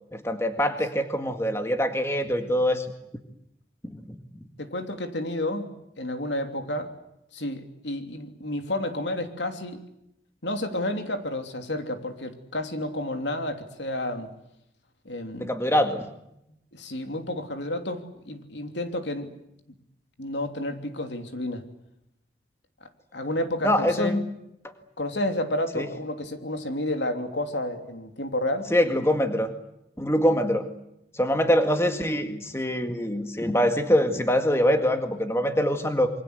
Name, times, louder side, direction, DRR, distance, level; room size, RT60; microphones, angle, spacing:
voice 1, 0.1-2.9 3.9-4.2 15.4-16.0 23.6-24.2 25.8-25.9 28.7-29.5 30.0-30.7 31.1-36.1, equal, 15° left, 7 dB, 1.9 m, -24 dB
voice 2, 4.6-6.9 7.3-9.8 10.4-14.3 15.0-15.5 16.7-19.3 20.2-21.6 23.1-24.2 25.0-28.7, left 1 dB, 80° left, 6 dB, 3.1 m, -30 dB
27.0 x 24.0 x 8.2 m, 0.82 s
head